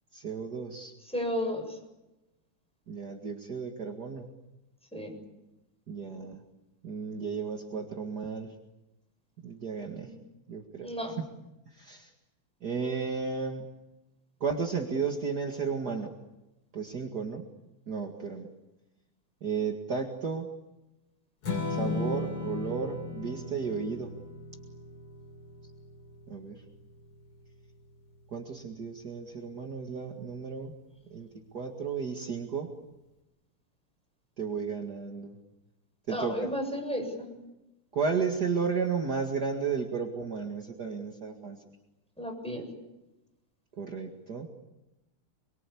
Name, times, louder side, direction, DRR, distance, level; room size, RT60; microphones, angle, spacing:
voice 1, 0.1-0.9 2.9-4.3 5.9-6.4 6.8-8.5 9.4-10.1 10.5-10.9 11.2-11.3 11.8-12.1 12.6-13.6 14.4-16.1 16.7-17.4 17.9-18.5 19.4-20.5 21.7-24.1 26.3-26.6 28.3-30.7 31.1-31.3 31.5-32.7 34.4-35.4 36.1-36.5 37.9-41.6 43.8-44.5, right 5 dB, 50° right, 2 dB, 2.5 m, -33 dB
voice 2, 1.1-1.8 4.9-5.2 10.0-10.1 10.8-11.1 36.1-37.3 42.2-42.7, equal, ahead, 3 dB, 7.6 m, -33 dB
Strum, 21.4-27.7, left 3 dB, 90° left, 3.9 m, -37 dB
28.5 x 23.5 x 8.6 m, 0.97 s
omnidirectional pair, 2.4 m